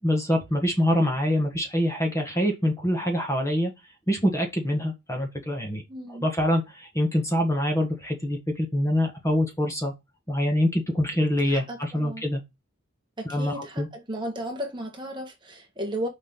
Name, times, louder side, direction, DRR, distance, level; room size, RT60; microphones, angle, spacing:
voice 1, 0.0-3.7 4.1-5.8 6.1-9.9 10.3-12.4 13.2-13.9, equal, 15° left, 1.6 m, -25 dB
voice 2, 5.9-6.3 11.5-12.2 13.2-16.1, equal, 20° right, 1.8 m, -34 dB
6.5 x 5.1 x 3.8 m
head